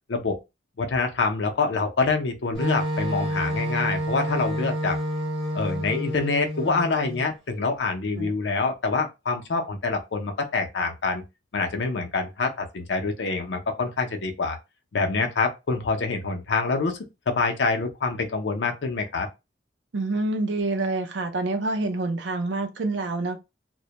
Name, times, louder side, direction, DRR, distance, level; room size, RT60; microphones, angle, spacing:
voice 1, 0.8-5.0 5.5-11.2 11.5-14.6 14.9-17.0 17.3-19.3, left 4 dB, 70° left, 0.5 m, -26 dB
Wind instrument woodwind instrument, 2.5-7.2, equal, 5° left, 1.1 m, -29 dB
voice 2, 19.9-23.4, right 2 dB, 70° right, 0.5 m, -27 dB
2.1 x 2.1 x 2.8 m
head